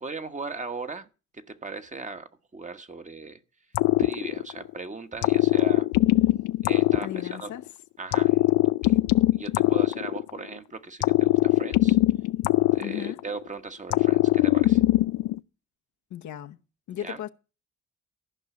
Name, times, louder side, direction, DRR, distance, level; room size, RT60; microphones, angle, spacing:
voice 1, 0.0-3.4 4.0-5.9 6.6-7.5 8.0-8.4 8.8-9.0 9.3-12.0 12.7-14.8 17.0-17.2, right 4 dB, 25° right, 1.3 m, -38 dB
sound 1, 3.7-4.7 5.2-7.6 8.1-10.5 11.0-13.4 13.9-15.4, left 18 dB, 90° left, 0.6 m, -21 dB
voice 2, 7.0-7.6 12.8-13.2 16.1-16.6 16.9-17.3, left 11 dB, 70° left, 1.0 m, -36 dB
14.5 x 5.5 x 8.3 m
cardioid pair, 90°, 30 cm